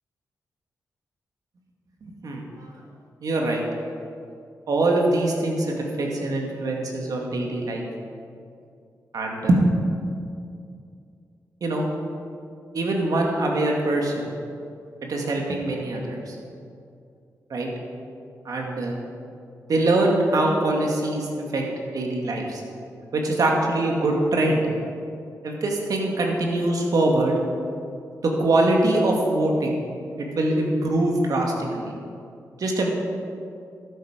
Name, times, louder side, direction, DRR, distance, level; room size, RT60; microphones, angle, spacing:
voice 1, 2.0-2.7 3.2-3.6 4.7-7.8 9.1-9.7 11.6-11.9 12.7-14.3 15.1-16.4 17.5-17.7 18.5-19.0 19.7-21.6 21.9-22.6 23.1-24.7 25.4-27.4 28.2-29.7 30.2-31.9 32.6-32.9, right 2 dB, 70° right, 0 dB, 2.1 m, -23 dB
12.0 x 9.7 x 5.1 m, 2.4 s
cardioid pair, 60°, 6 cm